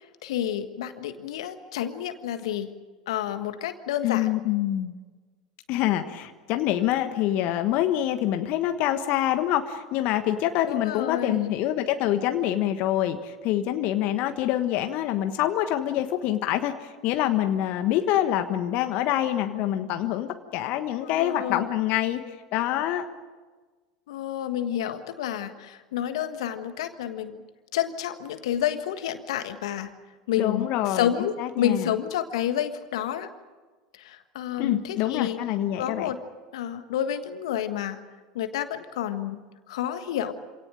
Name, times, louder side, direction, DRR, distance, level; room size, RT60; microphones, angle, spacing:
voice 1, 0.0-2.7 3.1-4.3 10.7-11.4 21.0-21.6 24.1-27.4 27.7-29.9 30.3-33.3 33.9-35.4 35.8-36.2 36.5-38.0 38.3-40.3, left 10 dB, 70° left, 9 dB, 1.5 m, -29 dB
voice 2, 4.0-4.9 5.7-22.2 22.5-23.1 30.4-31.1 31.4-31.8 34.6-36.1, left 12 dB, 55° left, 8 dB, 1.4 m, -26 dB
27.0 x 18.0 x 8.9 m, 1.4 s
hypercardioid pair, 80°, 3 cm